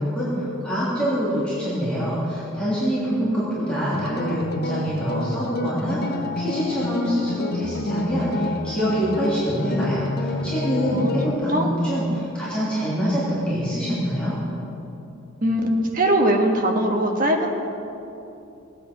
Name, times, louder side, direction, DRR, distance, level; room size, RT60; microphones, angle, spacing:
voice 1, 0.0-14.3, equal, 5° left, -11 dB, 3.1 m, -25 dB
sound 1, 3.9-11.3, left 2 dB, 50° left, 0.8 m, -28 dB
voice 2, 15.4-17.5, right 1 dB, 45° right, 2 dB, 1.5 m, -21 dB
18.5 x 8.4 x 6.2 m, 2.8 s
head